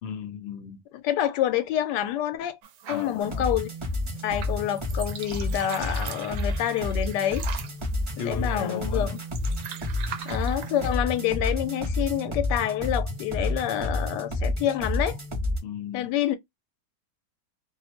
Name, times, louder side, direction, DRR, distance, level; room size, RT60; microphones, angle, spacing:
voice 1, 0.0-0.8 2.9-3.5 8.2-9.2 15.6-16.1, left 7 dB, 60° left, 0.8 m, -35 dB
voice 2, 1.0-2.6 2.9-3.7 4.2-7.4 8.2-9.2 10.2-15.2 15.9-16.4, left 11 dB, 90° left, 1.2 m, -27 dB
sound 1, 2.6-10.9, right 8 dB, 80° right, 1.1 m, -42 dB
sound 2, 3.2-15.6, left 2 dB, 35° right, 0.4 m, -30 dB
2.9 x 2.0 x 2.8 m
omnidirectional pair, 1.8 m